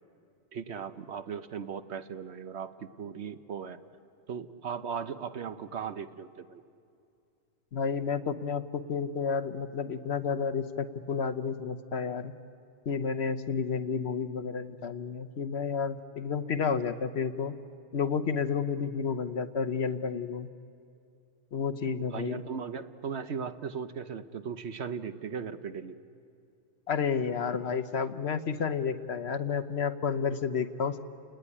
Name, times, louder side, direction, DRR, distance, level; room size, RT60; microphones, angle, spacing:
voice 1, 0.5-3.8 4.3-6.6 22.0-26.0, right 6 dB, 60° right, 10 dB, 1.0 m, -37 dB
voice 2, 7.7-12.3 12.9-17.6 17.9-20.5 21.5-22.4 26.9-31.0, left 6 dB, 60° left, 9 dB, 1.1 m, -31 dB
30.0 x 18.0 x 9.9 m, 2.5 s
omnidirectional pair, 1.3 m